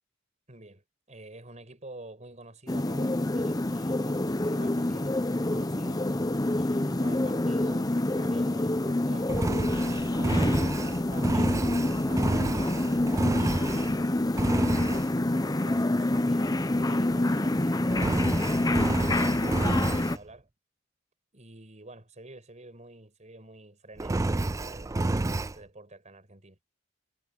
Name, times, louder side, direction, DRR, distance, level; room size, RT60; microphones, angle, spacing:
voice 1, 0.5-6.0 6.6-12.9 13.7-18.1 18.7-20.5 21.3-26.6, right 2 dB, 35° right, 5.9 m, -49 dB
sound 1, 2.7-20.2, left 1 dB, 20° left, 0.7 m, -27 dB
Engine, 9.3-14.0 14.4-15.1 17.9-20.2 24.0-25.6, right 2 dB, 15° right, 0.3 m, -30 dB
head